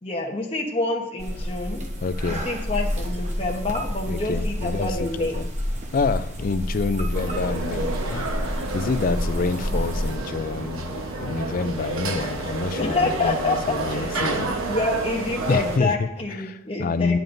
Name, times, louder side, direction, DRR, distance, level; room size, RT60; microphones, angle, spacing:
voice 1, 0.0-1.8 2.3-5.4 12.8-17.2, left 3 dB, 30° left, -1 dB, 1.0 m, -27 dB
sound 1, 1.2-10.2, equal, 35° right, 1.1 m, -29 dB
voice 2, 2.0-2.5 4.1-5.5 5.9-14.5 15.5-16.1 16.4-17.2, left 4 dB, 45° left, 14 dB, 0.4 m, -27 dB
sound 2, 7.1-15.8, right 2 dB, 90° right, 1.1 m, -30 dB
10.5 x 9.2 x 2.6 m, 0.81 s
head